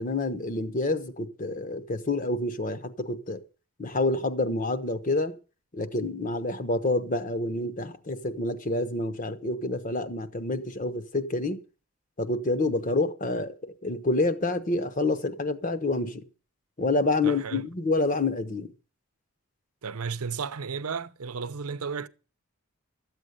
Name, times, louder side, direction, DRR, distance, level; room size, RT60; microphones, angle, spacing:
voice 1, 0.0-3.4 3.8-5.3 5.7-11.6 12.2-16.2 16.8-18.7, left 2 dB, 35° left, 0.9 m, -28 dB
voice 2, 17.2-17.7 19.8-22.1, right 5 dB, 85° right, 0.7 m, -33 dB
13.5 x 8.1 x 6.6 m
head